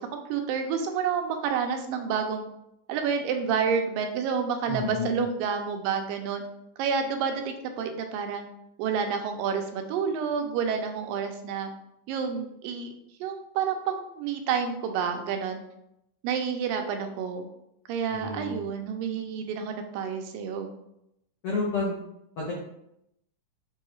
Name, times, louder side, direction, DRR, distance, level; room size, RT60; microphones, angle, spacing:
voice 1, 0.1-2.5 2.9-6.4 6.8-8.5 8.8-11.7 12.1-12.9 13.2-15.6 16.2-17.5 17.9-20.7, right 6 dB, 85° right, 5 dB, 2.2 m, -29 dB
voice 2, 4.7-5.2 18.1-18.6 21.4-22.0 22.4-22.5, left 3 dB, 85° left, -5 dB, 1.3 m, -30 dB
6.4 x 2.3 x 3.0 m, 0.80 s
omnidirectional pair, 3.9 m